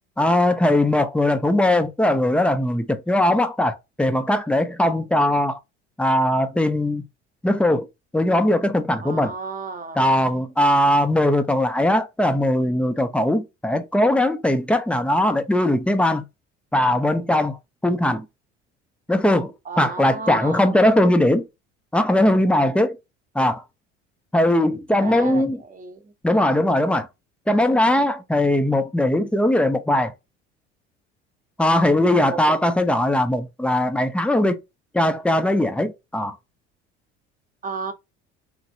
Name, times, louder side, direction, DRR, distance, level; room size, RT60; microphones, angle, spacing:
voice 1, 0.2-5.6 6.0-7.0 7.4-7.9 8.1-9.3 10.0-16.2 16.7-17.6 17.8-18.3 19.1-21.5 21.9-23.0 23.4-23.6 24.3-25.6 26.2-27.1 27.5-30.1 31.6-34.6 34.9-36.3, left 1 dB, 5° left, 0.4 m, -20 dB
voice 2, 9.0-10.0 19.7-20.8 25.0-26.1 32.3-32.4 37.6-37.9, right 4 dB, 25° right, 0.8 m, -33 dB
3.1 x 2.4 x 2.7 m
hypercardioid pair, 65°, 35 cm